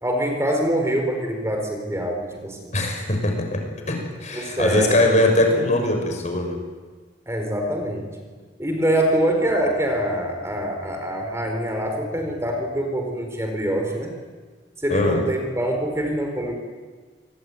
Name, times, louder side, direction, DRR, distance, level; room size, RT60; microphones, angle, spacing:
voice 1, 0.0-2.8 4.3-5.0 7.3-8.1 8.6-14.1 14.8-16.5, right 1 dB, 15° right, 3 dB, 4.4 m, -24 dB
voice 2, 2.7-6.6 14.9-15.2, left 1 dB, 40° left, 3 dB, 6.2 m, -21 dB
28.0 x 22.0 x 9.4 m, 1.4 s
head